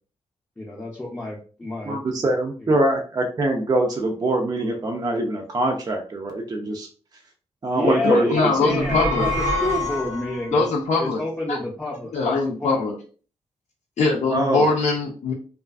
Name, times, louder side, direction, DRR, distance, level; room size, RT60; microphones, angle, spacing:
voice 1, 0.6-2.3 2.6-2.7 7.7-10.7 11.0-12.3 12.6-12.8, left 1 dB, 10° left, -3 dB, 0.5 m, -30 dB
voice 2, 1.8-6.9 7.6-8.3 8.7-9.0 14.3-14.7, right 2 dB, 35° right, 2 dB, 0.4 m, -23 dB
voice 3, 8.0-9.3 10.5-11.2 11.5-11.6 12.1-12.9 14.0-15.3, left 3 dB, 70° left, -3 dB, 0.4 m, -22 dB
sound 1, 8.7-10.5, left 1 dB, 85° right, 0.7 m, -26 dB
2.4 x 2.3 x 2.3 m, 0.40 s
cardioid pair, 80°, 12 cm